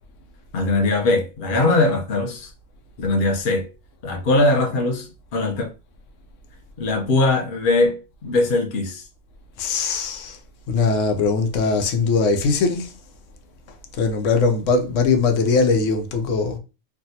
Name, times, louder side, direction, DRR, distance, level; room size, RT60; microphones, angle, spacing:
voice 1, 0.5-2.5 3.0-3.7 4.0-5.7 6.8-9.0, left 2 dB, 50° left, 0.8 m, -21 dB
voice 2, 9.6-10.4 10.7-12.9 14.0-16.6, left 4 dB, 80° left, 1.0 m, -20 dB
3.3 x 2.3 x 2.7 m
omnidirectional pair, 1.3 m